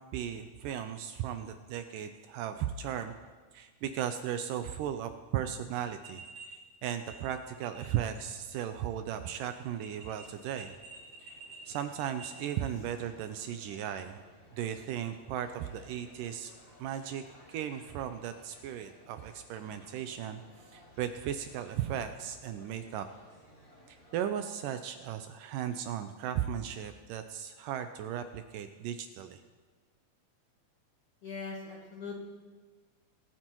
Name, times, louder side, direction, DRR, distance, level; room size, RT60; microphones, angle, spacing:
voice 1, 0.0-3.1 3.5-6.2 6.5-10.8 11.2-11.4 11.7-14.2 14.5-16.5 16.8-20.4 20.7-23.1 23.9-29.4, right 10 dB, 80° right, 8 dB, 1.9 m, -36 dB
sound 1, 6.0-6.6 6.8-8.1 8.4-8.5 9.7-12.5, right 4 dB, 50° right, 2.2 m, -50 dB
sound 2, 7.7-24.2, left 1 dB, 20° left, 1.9 m, -59 dB
voice 2, 31.2-32.1, left 4 dB, 55° left, -3 dB, 1.8 m, -40 dB
23.5 x 9.0 x 3.0 m, 1.4 s
omnidirectional pair, 4.2 m